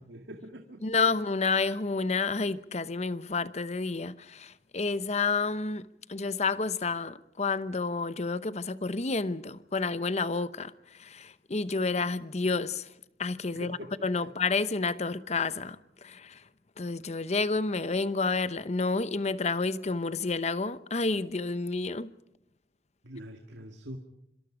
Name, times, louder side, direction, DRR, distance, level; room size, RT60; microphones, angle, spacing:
voice 1, 0.0-1.0 13.5-13.9 23.0-24.0, equal, 90° right, 2.0 m, -44 dB
voice 2, 0.8-16.5 16.8-22.1, left 4 dB, 40° left, 0.8 m, -30 dB
25.5 x 25.5 x 5.1 m
head